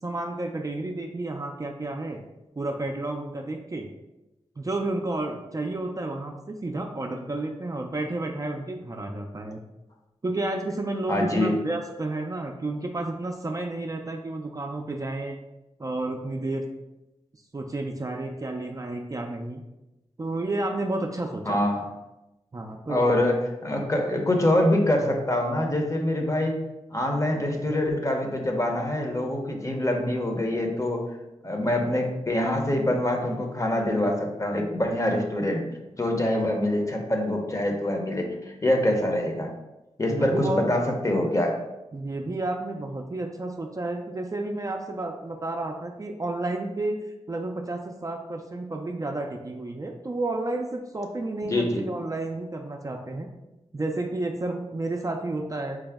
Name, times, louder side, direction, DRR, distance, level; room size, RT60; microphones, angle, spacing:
voice 1, 0.0-2.2 2.6-3.9 4.6-9.6 10.2-15.4 15.8-16.7 17.5-19.6 20.2-21.6 22.5-23.1 40.1-40.6 41.9-47.0 47.3-53.3 53.7-55.8, right 2 dB, 30° right, 2 dB, 0.4 m, -31 dB
voice 2, 11.1-11.5 21.5-21.8 22.9-26.6 26.9-31.0 31.4-35.7 36.0-39.5 40.0-41.6 51.5-51.8, left 1 dB, 25° left, 2 dB, 0.7 m, -25 dB
4.6 x 2.0 x 3.4 m, 0.96 s
wide cardioid pair, 65°, 12 cm